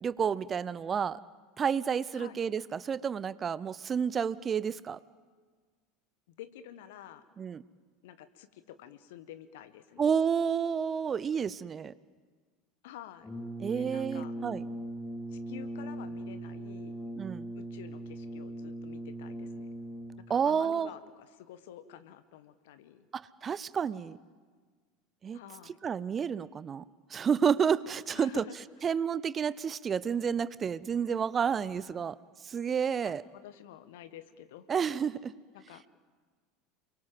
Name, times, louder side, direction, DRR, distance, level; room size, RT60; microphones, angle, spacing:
voice 1, 0.0-1.2 1.6-5.0 7.4-7.6 10.0-11.9 13.6-14.6 17.2-17.5 20.3-20.9 23.1-24.2 25.2-25.4 25.8-26.8 27.1-28.4 28.8-32.2 32.4-33.2 34.7-35.3, right 7 dB, 30° right, 19 dB, 0.7 m, -30 dB
voice 2, 6.4-7.2 8.0-10.0 12.8-13.3 13.7-14.3 15.3-17.0 17.6-19.7 20.3-23.1 25.3-25.8 28.1-29.0 33.0-34.7 35.5-36.0, left 11 dB, 65° left, 12 dB, 1.5 m, -49 dB
Brass instrument, 13.2-20.4, right 1 dB, 15° left, 3.8 m, -40 dB
29.0 x 22.0 x 7.8 m, 1.5 s
figure-of-eight pair, 75°, 0 cm